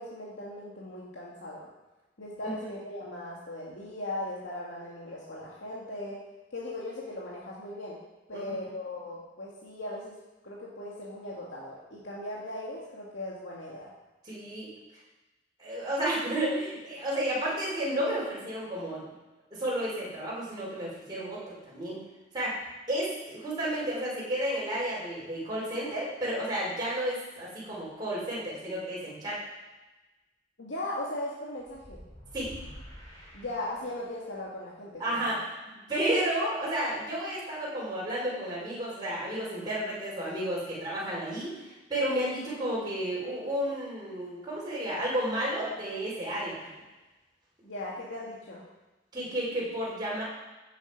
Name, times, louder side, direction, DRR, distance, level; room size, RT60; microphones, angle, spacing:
voice 1, 0.0-1.7 2.2-6.2 6.5-8.0 8.3-10.2 10.4-13.9 30.6-32.0 33.3-35.4 47.6-48.7, left 1 dB, 85° left, -5 dB, 2.2 m, -38 dB
voice 2, 14.3-14.7 15.6-19.1 19.5-22.0 22.3-22.6 22.9-29.4 32.3-32.5 35.0-35.4 35.9-41.5 41.9-46.7 49.1-50.2, right 1 dB, 25° right, -7 dB, 5.1 m, -32 dB
sound 1, 31.6-34.2, equal, 20° left, 4.8 m, -48 dB
15.0 x 8.1 x 5.3 m, 1.1 s
head